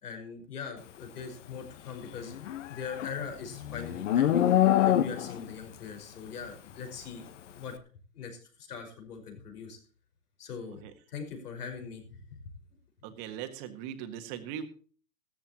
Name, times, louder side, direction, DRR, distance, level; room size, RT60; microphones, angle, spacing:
voice 1, 0.0-2.4 2.7-4.5 4.8-7.3 7.5-7.8 8.1-9.8 10.4-10.8 11.1-12.0 12.3-12.4, left 6 dB, 70° left, 5 dB, 5.4 m, -41 dB
Livestock farm animals working animals, 2.3-5.5, left 11 dB, 50° left, 1.3 m, -25 dB
voice 2, 13.0-14.7, right 9 dB, 25° right, 8 dB, 1.6 m, -39 dB
15.5 x 14.0 x 3.0 m, 0.41 s
hypercardioid pair, 155°, 47 cm